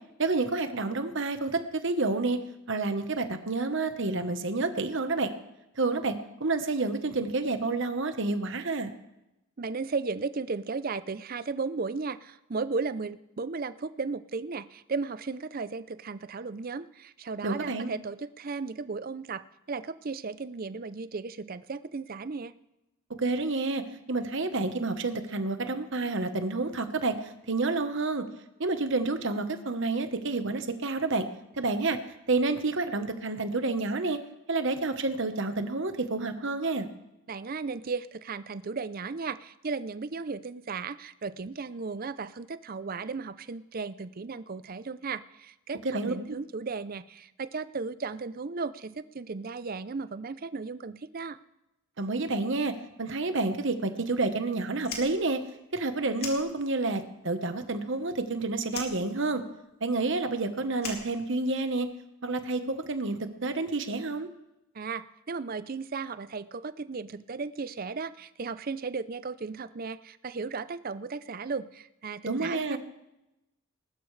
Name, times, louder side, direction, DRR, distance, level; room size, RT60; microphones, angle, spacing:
voice 1, 0.2-2.4 2.7-5.3 5.8-8.9 17.4-17.9 23.2-23.8 24.1-28.2 28.6-31.3 31.6-32.0 32.3-34.2 34.5-36.9 45.8-46.1 52.0-52.7 53.0-55.4 55.7-59.4 59.8-61.9 62.2-64.3 72.2-72.8, right 3 dB, 55° right, 9 dB, 1.1 m, -29 dB
voice 2, 9.6-22.5 37.3-51.4 64.7-72.8, right 4 dB, 40° right, 15 dB, 0.5 m, -35 dB
Fire, 54.7-57.0 57.3-58.3 58.7-61.8, left 3 dB, 45° left, 2.7 m, -41 dB
20.5 x 12.0 x 3.3 m, 0.91 s
head